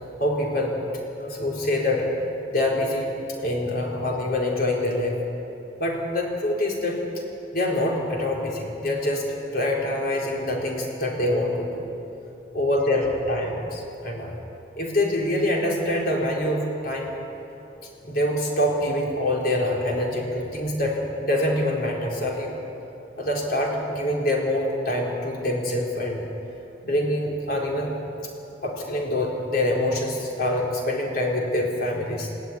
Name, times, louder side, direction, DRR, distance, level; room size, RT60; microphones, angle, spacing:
voice 1, 0.2-0.8 1.2-2.1 2.5-5.2 5.8-7.0 7.5-11.8 12.5-14.3 14.8-17.2 18.0-22.5 23.2-26.2 26.8-27.9 28.6-32.3, left 1 dB, 55° left, -1 dB, 4.2 m, -25 dB
20.0 x 16.0 x 9.9 m, 2.9 s
head